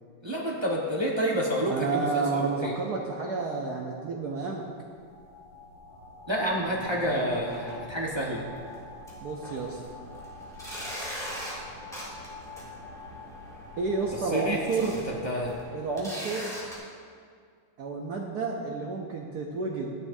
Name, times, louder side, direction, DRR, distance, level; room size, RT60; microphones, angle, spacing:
voice 1, 0.2-2.7 6.3-8.4 14.3-14.6 15.2-15.5, equal, 20° right, -4 dB, 0.6 m, -28 dB
voice 2, 1.6-4.6 6.7-7.2 9.2-9.8 13.8-15.0 15.7-16.6 17.8-19.9, right 4 dB, 65° right, -1 dB, 1.1 m, -31 dB
sound 1, 4.5-15.6, left 2 dB, 65° left, 2.8 m, -46 dB
sound 2, 7.3-7.7 8.1-8.2 8.7-8.8 9.1-16.7, equal, ahead, 2.7 m, -41 dB
13.5 x 10.5 x 2.7 m, 2.1 s
omnidirectional pair, 2.4 m